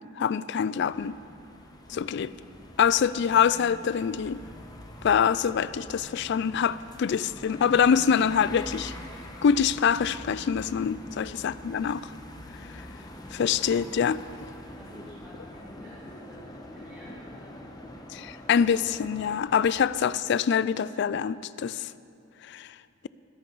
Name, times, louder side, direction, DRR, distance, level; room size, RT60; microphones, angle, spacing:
voice 1, 0.2-1.2 1.9-2.3 2.8-4.4 5.0-8.9 9.4-12.0 13.3-14.2 18.1-21.9 22.5-22.7, left 7 dB, 60° left, 17 dB, 0.3 m, -25 dB
sound 1, 0.7-19.9, left 1 dB, 20° left, 1.0 m, -45 dB
voice 2, 14.8-16.5 16.7-17.6, equal, 5° right, -14 dB, 3.3 m, -49 dB
21.0 x 11.0 x 4.0 m, 2.7 s
head